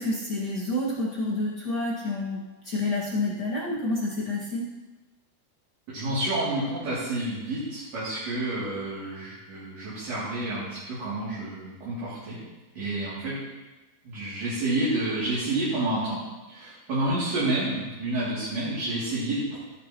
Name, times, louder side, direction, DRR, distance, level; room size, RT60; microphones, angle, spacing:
voice 1, 0.0-4.6, left 2 dB, 55° left, -7 dB, 1.1 m, -29 dB
voice 2, 5.9-12.4 12.8-13.4 14.0-16.2 16.5-19.6, right 2 dB, 45° right, -10 dB, 3.6 m, -29 dB
14.5 x 10.5 x 3.0 m, 1.1 s
omnidirectional pair, 4.6 m